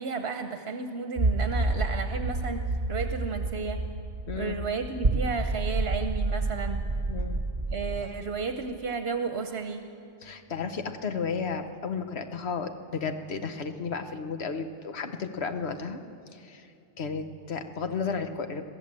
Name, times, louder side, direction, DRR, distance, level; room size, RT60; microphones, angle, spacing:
voice 1, 0.0-2.6 2.9-3.8 4.3-6.8 7.7-9.9, right 5 dB, 70° right, 6 dB, 1.1 m, -33 dB
sound 1, 1.2-8.0, right 2 dB, 40° right, 1.4 m, -29 dB
voice 2, 4.3-4.6 7.1-7.4 10.2-16.0 16.3-16.7 17.0-18.6, left 5 dB, 75° left, 7 dB, 1.3 m, -33 dB
22.5 x 15.5 x 7.5 m, 2.7 s
omnidirectional pair, 1.1 m